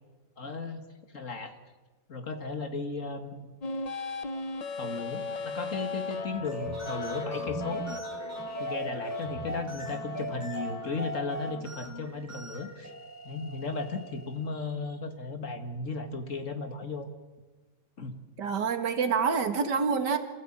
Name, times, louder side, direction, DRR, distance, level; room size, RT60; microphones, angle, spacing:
voice 1, 0.4-0.8 1.1-1.6 2.1-3.5 4.8-8.0 8.6-12.9 13.2-17.1 18.0-18.2, left 3 dB, 45° left, 7 dB, 2.0 m, -35 dB
sound 1, 3.6-11.6, left 2 dB, 65° left, 0.3 m, -37 dB
sound 2, 6.3-14.6, equal, 10° right, 3.4 m, -40 dB
voice 2, 18.4-20.2, right 5 dB, 70° right, 7 dB, 2.4 m, -27 dB
26.5 x 16.5 x 8.8 m, 1.3 s
omnidirectional pair, 1.9 m